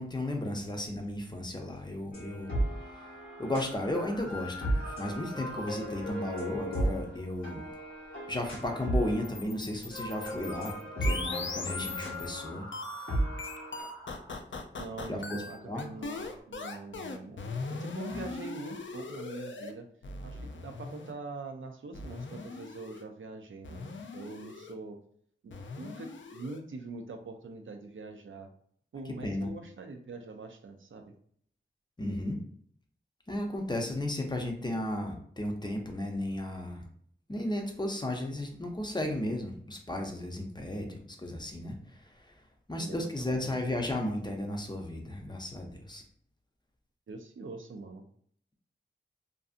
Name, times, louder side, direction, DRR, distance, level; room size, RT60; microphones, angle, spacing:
voice 1, 0.0-2.5 3.4-7.7 8.3-12.7 15.1-15.9 18.1-18.3 29.2-29.5 32.0-32.4 33.3-36.8 37.3-42.3 42.7-46.0, left 1 dB, 20° left, 2 dB, 0.6 m, -34 dB
sound 1, 2.1-3.7 4.3-9.4 9.7-13.8, right 1 dB, 85° left, 1.1 m, -35 dB
sound 2, 2.6-6.1 6.4-10.4 11.3-14.9 15.4-16.4, equal, 20° right, 0.8 m, -52 dB
sound 3, 9.2-12.3 12.7-19.7 20.0-21.1 21.9-23.0 23.6-24.7 25.5-26.6, left 4 dB, 70° left, 0.4 m, -40 dB
voice 2, 14.8-19.9 20.2-25.0 25.4-28.5 28.9-31.1 40.6-40.9 42.8-43.5 47.1-48.1, right 3 dB, 75° right, 5 dB, 0.4 m, -44 dB
2.6 x 2.6 x 2.4 m, 0.62 s
wide cardioid pair, 55°, 20 cm